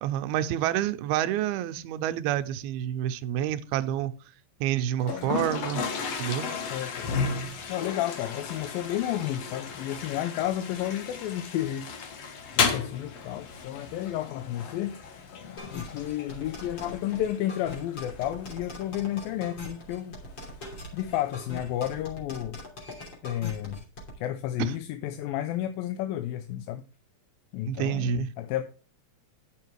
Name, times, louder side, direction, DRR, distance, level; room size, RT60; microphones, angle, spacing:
voice 1, 0.0-4.1 4.6-5.8 6.2-6.5 24.6-24.7 27.7-28.3, right 11 dB, 85° right, 2.6 m, -28 dB
Toilet flush, 5.0-22.0, left 5 dB, 55° left, 2.0 m, -35 dB
voice 2, 6.7-7.1 7.7-11.9 12.6-15.0 15.7-20.2 20.9-22.6 23.2-23.8 24.2-26.8 27.5-28.6, left 12 dB, 80° left, 2.4 m, -31 dB
sound 1, 15.6-24.1, left 2 dB, 30° left, 3.4 m, -41 dB
11.0 x 6.5 x 4.6 m
omnidirectional pair, 4.4 m